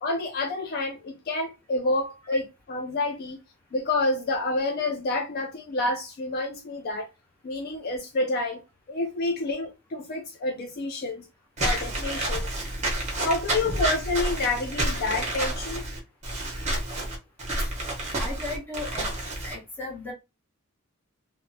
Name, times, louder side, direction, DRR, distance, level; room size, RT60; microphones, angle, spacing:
voice 1, 0.0-3.4 3.7-7.1 7.4-11.3 11.6-12.5 13.2-15.8, left 2 dB, 45° left, 0.3 m, -28 dB
Walk footsteps / Squeak, 11.6-19.5, right 1 dB, 30° right, 0.8 m, -29 dB
voice 2, 18.2-19.1 19.4-20.1, left 2 dB, 10° left, 1.0 m, -35 dB
3.1 x 2.0 x 2.6 m
head